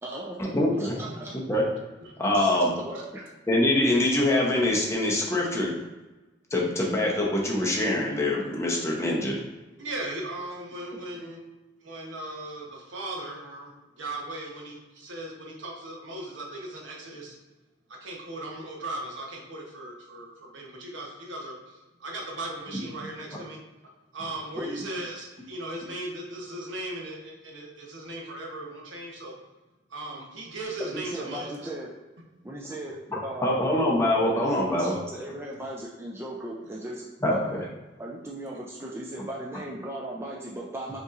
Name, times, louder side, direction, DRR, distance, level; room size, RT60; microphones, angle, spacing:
voice 1, 0.0-0.4 0.8-1.3 2.3-2.5 2.8-3.3 24.5-24.8 30.8-31.9 32.4-33.6 34.2-37.7 38.0-41.0, right 1 dB, 15° right, -3 dB, 0.4 m, -37 dB
voice 2, 0.5-1.0 1.5-1.6 2.2-2.7 3.5-5.7 6.5-9.4 33.4-34.9 37.2-37.6, left 1 dB, 15° left, -3 dB, 0.7 m, -24 dB
voice 3, 9.8-11.4 11.8-17.4 18.0-23.6 24.1-29.3 29.9-31.7 34.8-35.0, right 1 dB, 75° right, -1 dB, 0.9 m, -38 dB
5.3 x 2.9 x 2.4 m, 1.1 s
head